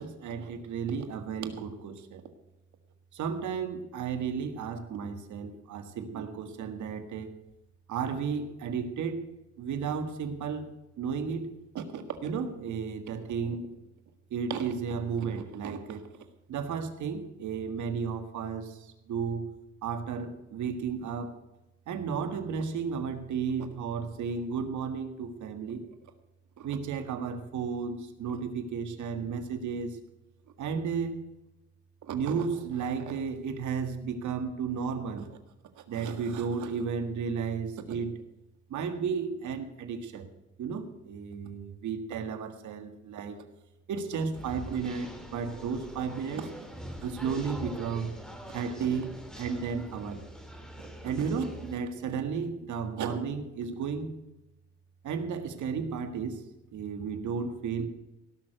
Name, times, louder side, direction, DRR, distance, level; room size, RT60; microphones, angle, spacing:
voice 1, 0.0-2.2 3.1-7.4 7.9-9.3 9.6-10.7 11.0-13.7 14.3-16.1 16.5-19.5 19.8-21.4 21.9-25.9 26.6-30.0 30.6-31.3 32.0-35.4 35.8-38.2 38.7-40.3 40.6-43.4 43.9-46.5 47.0-48.2 48.5-50.2 50.8-54.1 55.0-56.4 56.7-57.9, right 6 dB, 75° right, 8 dB, 1.8 m, -33 dB
sound 1, 44.3-51.8, equal, ahead, 2.6 m, -44 dB
17.5 x 6.5 x 7.8 m, 0.94 s
cardioid pair, 90°, 30 cm